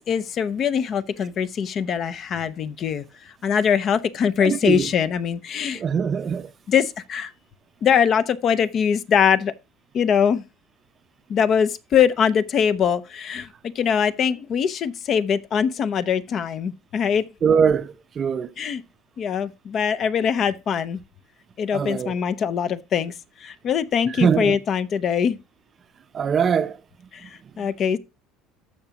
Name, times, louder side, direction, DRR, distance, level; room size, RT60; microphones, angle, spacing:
voice 1, 0.1-5.8 6.7-7.3 7.8-9.5 9.9-10.4 11.3-17.2 18.6-18.8 19.2-21.0 21.6-25.4 27.1-28.0, left 7 dB, 40° left, 0.6 m, -22 dB
voice 2, 4.4-4.9 5.7-6.5 17.4-18.5 21.7-22.1 24.2-24.6 26.1-26.8, right 7 dB, 30° right, 0.6 m, -22 dB
14.0 x 5.7 x 2.8 m
cardioid pair, 140°, 0 cm